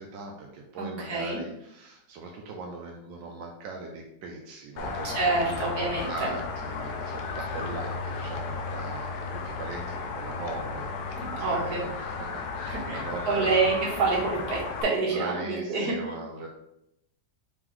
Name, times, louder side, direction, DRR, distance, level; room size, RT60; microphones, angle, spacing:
voice 1, 0.0-13.6 15.1-16.5, right 3 dB, 85° right, 0 dB, 1.3 m, -39 dB
voice 2, 0.8-1.4 5.0-6.3 11.2-11.8 12.7-16.1, right 3 dB, 60° right, -3 dB, 1.6 m, -27 dB
sound 1, 4.8-14.8, left 4 dB, 75° left, 1.1 m, -34 dB
3.9 x 3.1 x 3.7 m, 0.82 s
omnidirectional pair, 2.0 m